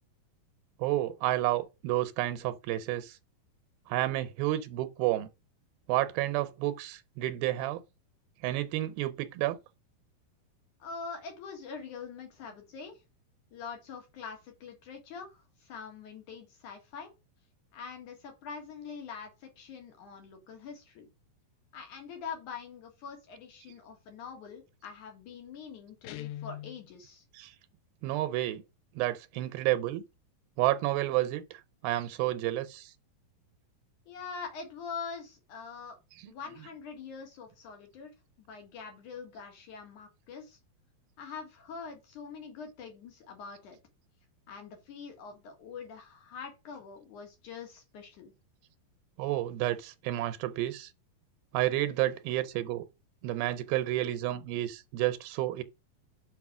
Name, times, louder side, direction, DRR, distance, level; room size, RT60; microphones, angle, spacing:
voice 1, 0.8-3.2 3.9-5.3 5.9-7.8 8.4-9.6 27.3-27.5 28.0-28.6 29.0-30.0 30.6-32.9 36.2-36.3 49.2-50.9 51.5-52.9 53.2-55.6, right 15 dB, 85° right, 2.4 m, -30 dB
voice 2, 10.8-13.0 13.5-17.1 17.7-21.1 21.7-27.2 34.1-36.0 36.3-38.1 38.4-40.6 41.2-43.8 44.5-48.3, left 5 dB, 60° left, 3.2 m, -44 dB
Guitar, 26.0-26.8, left 14 dB, 75° left, 2.3 m, -41 dB
6.1 x 5.4 x 6.0 m
omnidirectional pair, 4.2 m